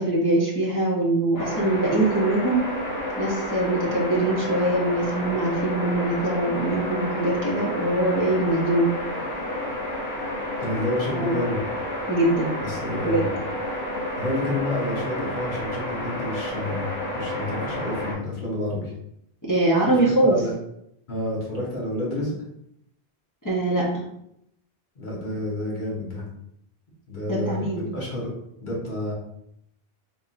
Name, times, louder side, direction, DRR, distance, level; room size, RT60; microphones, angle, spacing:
voice 1, 0.0-2.6 3.2-8.9 11.1-11.4 12.1-12.5 13.0-13.3 19.5-20.4 23.4-23.9 27.3-27.9, right 2 dB, 20° left, -6 dB, 0.8 m, -23 dB
sound 1, 1.3-18.1, left 1 dB, 65° left, 2.0 m, -30 dB
voice 2, 10.6-11.6 12.6-13.3 14.2-16.9 17.1-18.9 20.2-20.5 21.1-22.3 24.9-26.2 27.1-28.3 28.6-29.1, left 1 dB, 50° left, -4 dB, 1.4 m, -29 dB
4.0 x 3.7 x 2.5 m, 0.76 s
omnidirectional pair, 1.1 m